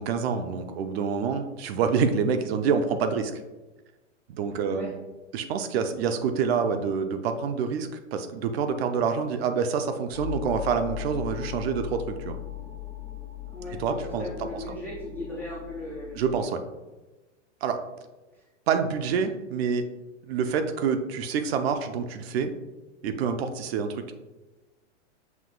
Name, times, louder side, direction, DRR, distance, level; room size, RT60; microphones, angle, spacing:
voice 1, 0.0-3.4 4.3-4.9 5.3-12.4 13.7-14.6 16.2-16.6 17.6-17.8 18.7-19.9 20.3-22.5 23.0-24.1, right 6 dB, 55° right, 8 dB, 0.6 m, -27 dB
sound 1, 10.1-16.4, left 12 dB, 60° left, 1.2 m, -38 dB
voice 2, 13.5-16.2 18.3-18.4 18.7-18.8, left 1 dB, 5° left, -7 dB, 0.3 m, -37 dB
5.9 x 2.3 x 3.7 m, 1.1 s
hypercardioid pair, 135°, 37 cm